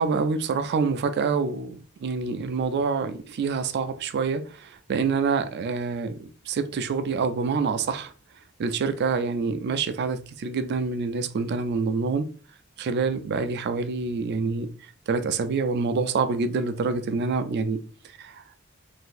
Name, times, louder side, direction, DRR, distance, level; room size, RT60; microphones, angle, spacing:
voice 1, 0.0-8.1 8.6-12.3 12.8-14.7 15.1-17.8 18.2-18.3, right 4 dB, 50° right, 0.4 m, -26 dB
3.8 x 2.6 x 2.5 m
head